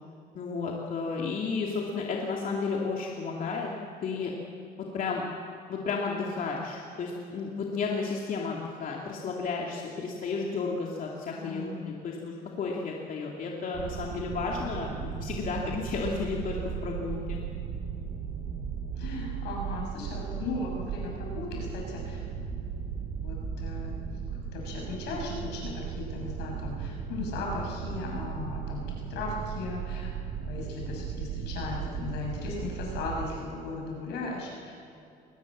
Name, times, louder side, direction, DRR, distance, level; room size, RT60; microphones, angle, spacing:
voice 1, 0.3-3.7 4.0-4.3 4.8-5.2 5.7-17.4, left 4 dB, 55° left, -1 dB, 2.6 m, -32 dB
voice 2, 11.3-11.7 19.0-22.3 23.2-23.9 24.5-28.8 29.1-30.1 30.4-34.7, left 3 dB, 80° left, 0 dB, 6.8 m, -37 dB
sound 1, 13.7-33.3, right 7 dB, 85° right, 2.9 m, -36 dB
21.5 x 19.0 x 7.4 m, 2.7 s
cardioid pair, 110°, 17 cm